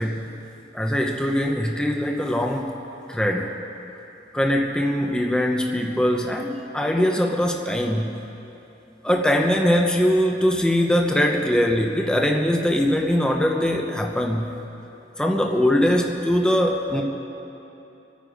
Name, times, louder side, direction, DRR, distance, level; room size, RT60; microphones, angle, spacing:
voice 1, 0.7-2.8 3.1-3.6 4.3-8.2 9.0-14.5 15.2-17.0, equal, 5° left, 1 dB, 0.8 m, -22 dB
25.0 x 9.4 x 5.2 m, 2.9 s
head